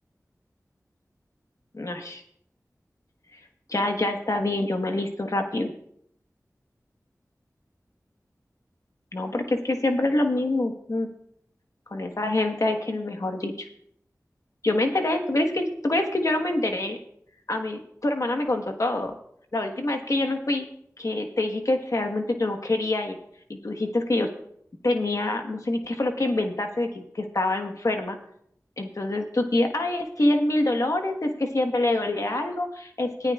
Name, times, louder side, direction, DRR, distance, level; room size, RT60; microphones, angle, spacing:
voice 1, 1.7-2.2 3.7-5.7 9.1-11.1 11.9-13.7 14.6-17.0 17.5-19.1 19.5-20.6 21.0-23.2 23.5-24.3 24.8-28.2 28.8-33.3, left 2 dB, 60° left, 4 dB, 1.3 m, -26 dB
19.0 x 10.5 x 2.4 m, 0.69 s
wide cardioid pair, 55°, 6 cm